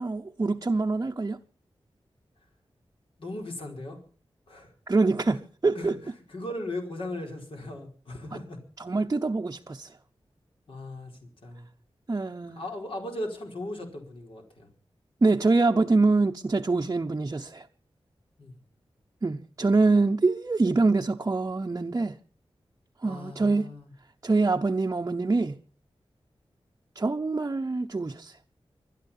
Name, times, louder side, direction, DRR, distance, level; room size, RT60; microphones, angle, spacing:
voice 1, 0.0-1.4 4.9-6.0 8.3-8.4 8.8-9.9 12.1-12.6 15.2-17.7 19.2-22.2 23.0-23.7 24.2-25.6 26.9-28.4, right 3 dB, 30° right, 0.8 m, -25 dB
voice 2, 3.2-4.0 4.5-4.7 5.3-5.4 5.7-5.9 6.3-8.6 10.7-11.1 11.4-11.7 12.5-14.7 18.4-18.6 23.0-23.9, left 1 dB, 65° left, 4.6 m, -37 dB
25.0 x 10.0 x 5.6 m
wide cardioid pair, 125°, 10 cm